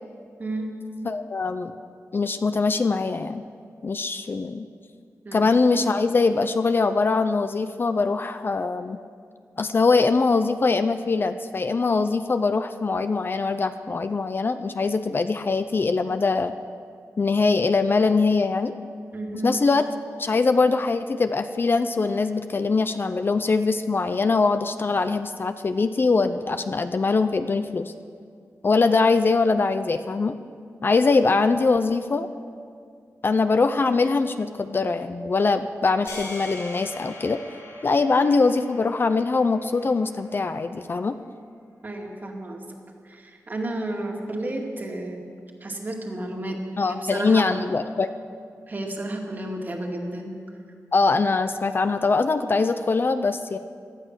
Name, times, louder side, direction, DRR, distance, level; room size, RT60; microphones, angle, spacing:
voice 1, 0.4-0.7 5.2-5.5 19.1-19.5 41.8-42.6 43.0-45.2 45.6-47.6 48.7-50.3, right 1 dB, 35° right, 1 dB, 2.1 m, -32 dB
voice 2, 1.0-1.7 2.1-3.4 3.8-4.7 5.3-9.0 9.6-16.5 17.2-18.7 19.4-19.8 20.2-27.9 28.6-30.3 30.8-32.3 33.2-37.4 37.8-41.1 46.8-48.1 50.9-53.6, left 4 dB, 40° left, 10 dB, 0.5 m, -22 dB
sound 1, 36.1-40.4, left 2 dB, 80° left, 4.9 m, -41 dB
17.5 x 12.0 x 6.6 m, 2.2 s
wide cardioid pair, 140°, 6 cm